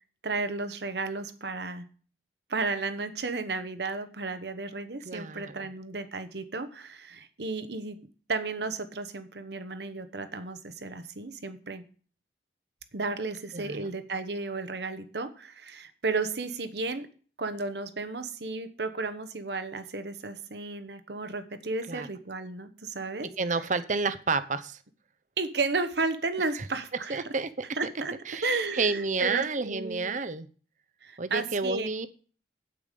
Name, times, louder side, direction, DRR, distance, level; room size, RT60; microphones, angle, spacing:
voice 1, 0.2-1.9 2.5-8.0 8.3-11.8 12.9-17.1 17.4-23.3 25.4-27.2 27.7-30.2 31.0-31.9, right 3 dB, 65° right, 11 dB, 1.1 m, -33 dB
voice 2, 5.1-5.7 13.5-13.9 21.9-22.1 23.4-24.8 27.1-27.5 28.3-30.5 31.2-32.1, right 4 dB, 45° right, 12 dB, 0.7 m, -30 dB
8.7 x 8.2 x 5.2 m, 0.40 s
head